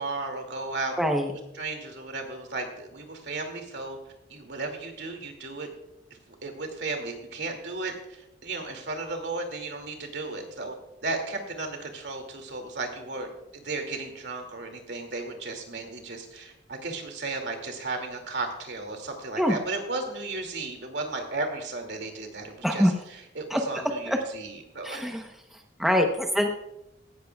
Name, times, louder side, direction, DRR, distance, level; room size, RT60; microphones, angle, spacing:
voice 1, 0.0-1.0 1.3-4.0 4.3-5.7 6.1-10.7 11.0-13.3 13.5-25.0, right 3 dB, 65° right, 4 dB, 2.4 m, -35 dB
voice 2, 1.0-1.3 19.4-19.5 22.6-22.9 23.5-23.6 24.1-24.2 24.8-25.2 25.8-26.5, equal, ahead, 3 dB, 0.8 m, -23 dB
17.0 x 13.5 x 2.3 m, 0.89 s
head